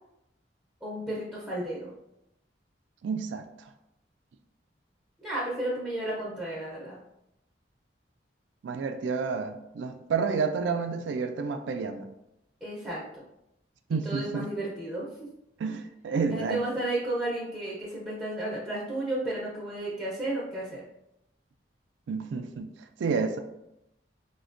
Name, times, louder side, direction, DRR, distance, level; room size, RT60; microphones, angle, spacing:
voice 1, 0.8-1.9 5.2-7.0 12.6-13.0 13.9-15.3 16.3-20.8, right 1 dB, 5° right, 0.5 m, -33 dB
voice 2, 3.0-3.5 8.6-12.1 13.9-14.5 15.6-16.7 22.1-22.7 23.0-23.4, right 5 dB, 85° right, 0.3 m, -30 dB
4.1 x 2.1 x 2.4 m
head